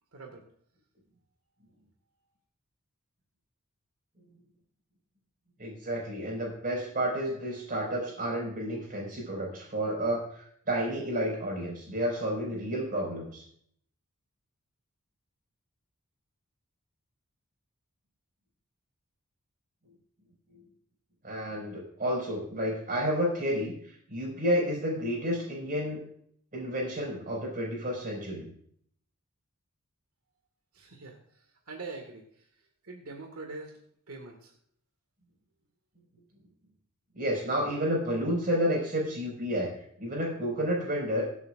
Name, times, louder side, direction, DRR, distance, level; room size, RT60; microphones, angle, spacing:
voice 1, 0.1-0.4 30.7-33.8 34.1-34.5, right 3 dB, 85° right, 2 dB, 1.9 m, -44 dB
voice 2, 5.6-13.4 20.5-20.6 21.2-26.0 26.5-28.5 37.2-39.7 40.0-41.3, equal, 40° right, -2 dB, 5.1 m, -31 dB
23.0 x 8.3 x 2.5 m, 0.64 s
head